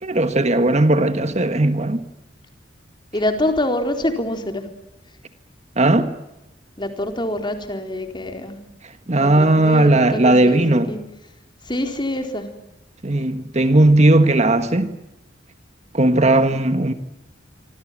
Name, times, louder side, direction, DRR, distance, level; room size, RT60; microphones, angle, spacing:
voice 1, 0.0-2.0 5.8-6.1 9.1-10.9 13.0-14.9 15.9-16.9, right 2 dB, 35° right, 1.6 m, -16 dB
voice 2, 3.1-4.6 6.8-8.6 9.2-11.0 11.7-12.5, left 1 dB, 25° left, 4.1 m, -25 dB
27.0 x 25.0 x 7.6 m
head